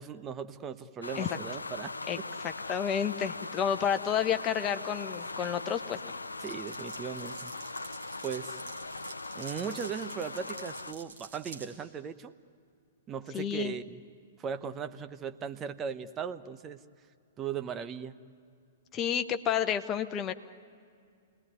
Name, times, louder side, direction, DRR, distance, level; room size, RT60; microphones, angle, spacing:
voice 1, 0.0-1.9 6.4-7.5 8.2-8.6 9.3-12.3 13.1-14.0 14.4-16.8 17.4-18.2, right 7 dB, 25° right, 10 dB, 1.0 m, -38 dB
sound 1, 1.0-10.9, left 3 dB, 85° left, 0.6 m, -40 dB
voice 2, 2.1-6.1 13.3-13.7 18.9-20.3, left 8 dB, 25° left, 7 dB, 1.2 m, -30 dB
Glass, 6.4-11.7, right 4 dB, 60° right, 5.0 m, -47 dB
28.5 x 20.0 x 9.6 m, 2.3 s
figure-of-eight pair, 110°, 0 cm